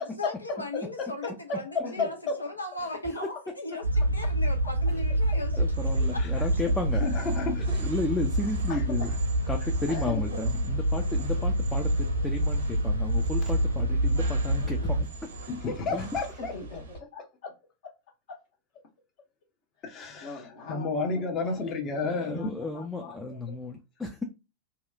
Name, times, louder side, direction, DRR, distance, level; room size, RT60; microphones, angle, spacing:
voice 1, 0.0-6.3 6.5-6.6, left 2 dB, 85° left, 0.6 m, -38 dB
sound 1, 3.8-15.0, right 1 dB, 85° right, 0.3 m, -27 dB
sound 2, 5.5-17.0, right 3 dB, 65° right, 0.7 m, -43 dB
voice 2, 5.6-7.0 7.6-9.1 9.5-15.0 15.9-16.2 22.0-24.2, left 3 dB, 10° left, 0.4 m, -33 dB
voice 3, 7.0-7.7 15.5-16.5 19.8-20.3 20.7-22.5, left 4 dB, 30° left, 0.8 m, -31 dB
voice 4, 8.4-9.2 9.9-10.4 14.6-14.9 16.4-17.5 18.3-18.4 19.8-19.9 20.2-23.4, left 4 dB, 50° left, 1.0 m, -42 dB
2.8 x 2.3 x 2.3 m
figure-of-eight pair, 90°, 0 cm